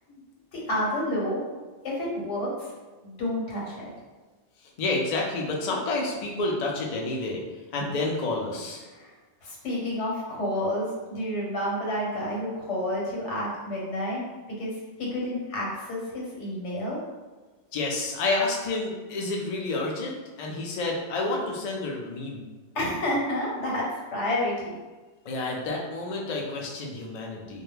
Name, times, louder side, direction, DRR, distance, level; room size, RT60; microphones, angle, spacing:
voice 1, 0.5-1.4 1.8-2.7 3.0-3.9 8.9-9.1 9.4-14.2 14.5-17.0 22.7-24.8, left 1 dB, 90° left, -4 dB, 1.1 m, -30 dB
voice 2, 4.8-7.4 7.7-8.8 17.7-22.5 25.2-27.6, left 2 dB, 60° left, -1 dB, 0.4 m, -29 dB
2.2 x 2.1 x 3.1 m, 1.3 s
omnidirectional pair, 1.2 m